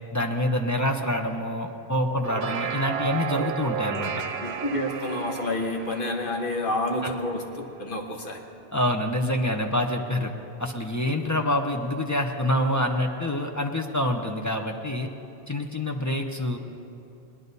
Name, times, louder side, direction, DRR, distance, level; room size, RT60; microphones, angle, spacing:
voice 1, 0.1-4.1 8.7-10.3 10.6-15.1 15.5-16.6, left 1 dB, 20° left, 2 dB, 0.7 m, -26 dB
sound 1, 2.1-7.6, right 7 dB, 70° right, 1.0 m, -33 dB
voice 2, 4.4-8.5, left 1 dB, 55° left, 2 dB, 1.4 m, -29 dB
19.0 x 11.0 x 4.1 m, 2.7 s
omnidirectional pair, 1.1 m